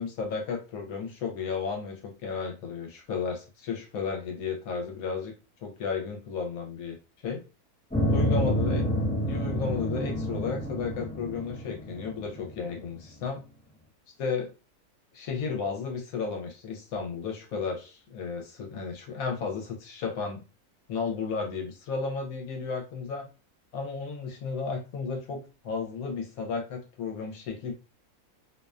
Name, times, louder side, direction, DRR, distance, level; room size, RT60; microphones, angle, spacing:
voice 1, 0.0-5.3 5.6-7.4 8.1-8.9 9.3-13.4 14.2-14.5 15.1-20.4 20.9-23.3 23.7-27.7, left 5 dB, 80° left, 2 dB, 1.0 m, -33 dB
sound 1, 7.9-12.8, equal, 10° left, 0.4 m, -29 dB
2.6 x 2.1 x 2.3 m, 0.32 s
omnidirectional pair, 1.5 m